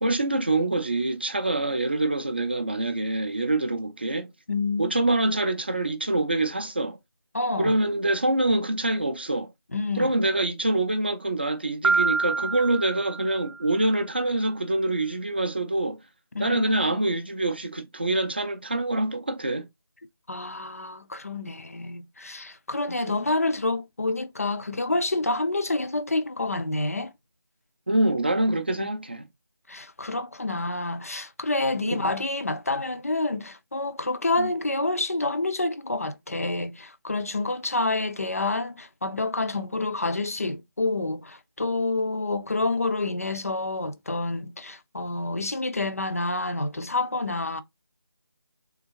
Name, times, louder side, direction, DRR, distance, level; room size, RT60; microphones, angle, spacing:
voice 1, 0.0-4.3 4.8-7.0 7.6-9.5 10.0-16.0 16.4-19.7 27.9-29.3 31.9-32.1 34.4-34.5, right 2 dB, 25° right, 0.4 m, -25 dB
voice 2, 4.5-4.9 7.3-7.7 9.7-10.2 16.3-16.6 16.9-17.0 20.3-27.1 28.8-28.9 29.7-47.6, left 2 dB, 35° left, 0.4 m, -28 dB
Piano, 11.8-13.7, right 4 dB, 75° right, 0.5 m, -26 dB
3.6 x 3.5 x 2.8 m
figure-of-eight pair, 170°, 13 cm